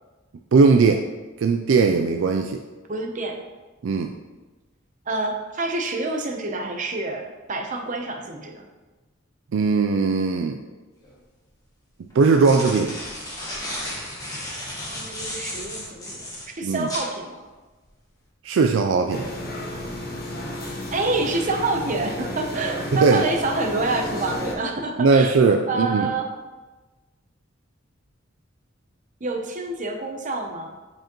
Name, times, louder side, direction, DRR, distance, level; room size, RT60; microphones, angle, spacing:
voice 1, 0.5-1.0 1.4-2.6 3.8-4.1 9.5-10.6 12.1-12.9 16.6-16.9 18.4-19.3 23.0-23.3 25.0-26.1, right 4 dB, 65° right, 4 dB, 0.4 m, -19 dB
voice 2, 2.9-3.4 5.1-8.6 14.8-16.2 16.6-17.5 20.9-25.3 25.7-26.3 29.2-30.7, right 3 dB, 40° right, 3 dB, 0.7 m, -27 dB
sound 1, 11.0-11.1 12.1-17.1, left 1 dB, 20° left, 1.4 m, -34 dB
sound 2, 19.1-24.5, left 1 dB, 50° left, 1.2 m, -32 dB
7.5 x 4.9 x 3.0 m, 1.2 s
head